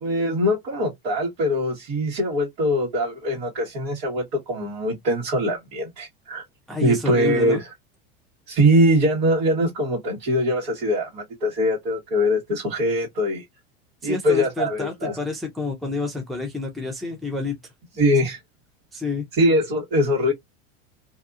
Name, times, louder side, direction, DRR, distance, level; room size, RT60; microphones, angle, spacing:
voice 1, 0.0-6.4 6.8-7.7 8.5-13.4 14.0-15.2 18.0-18.4 19.3-20.3, equal, 65° right, 1.5 m, -22 dB
voice 2, 6.7-7.6 14.0-17.6 18.9-19.2, left 4 dB, ahead, 0.5 m, -28 dB
2.7 x 2.3 x 2.5 m
hypercardioid pair, 110°, 31 cm